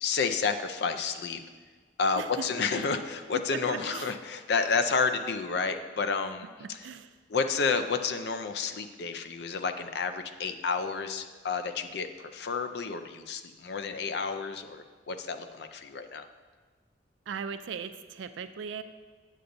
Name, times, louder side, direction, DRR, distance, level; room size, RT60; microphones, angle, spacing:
voice 1, 0.0-1.4 2.0-6.5 7.3-16.3, left 5 dB, 60° left, 8 dB, 0.4 m, -30 dB
voice 2, 2.2-2.5 2.8-2.9 3.3-4.1 6.6-7.2 17.3-18.8, right 6 dB, 80° right, 10 dB, 0.4 m, -38 dB
8.3 x 7.8 x 2.6 m, 1.4 s
head